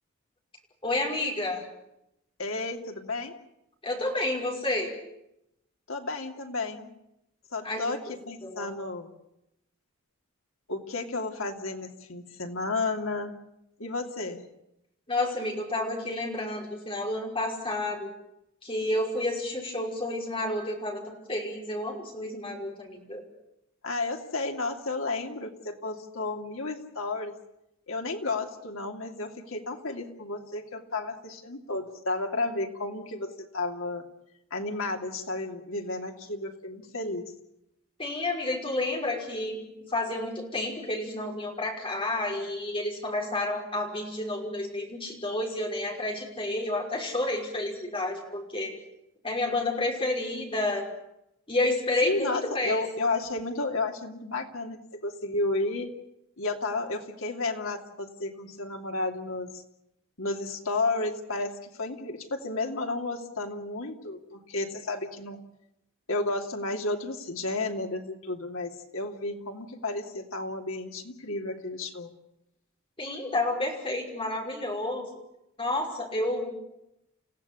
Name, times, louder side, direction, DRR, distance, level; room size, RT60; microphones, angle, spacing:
voice 1, 0.8-1.6 3.8-4.9 7.6-7.9 8.4-8.7 15.1-18.1 18.6-23.2 38.0-39.6 39.9-48.7 49.2-50.9 51.5-52.9 73.0-75.1 75.6-76.5, left 2 dB, 25° left, 0 dB, 5.6 m, -30 dB
voice 2, 2.4-3.3 5.9-6.9 7.5-9.1 10.7-13.4 13.8-14.4 23.8-27.4 27.9-34.1 34.5-37.3 52.0-55.9 56.4-59.5 60.2-65.4 66.1-72.1, left 2 dB, 70° left, 3 dB, 2.7 m, -32 dB
29.5 x 16.0 x 8.5 m, 0.84 s
head